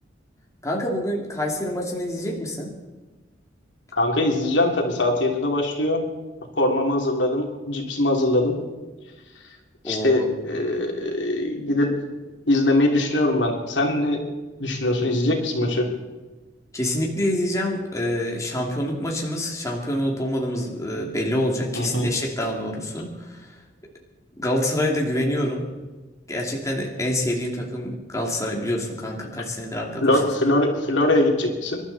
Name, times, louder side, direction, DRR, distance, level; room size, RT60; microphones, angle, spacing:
voice 1, 0.6-2.7 9.8-10.3 16.7-23.6 24.4-25.6 26.3-30.2, left 1 dB, 15° left, -1 dB, 2.7 m, -26 dB
voice 2, 3.9-6.0 6.6-8.6 9.8-11.9 12.5-14.2 14.6-15.9 21.7-22.1 30.0-31.8, left 1 dB, 75° left, 1 dB, 3.2 m, -22 dB
26.5 x 12.5 x 4.2 m, 1.2 s
head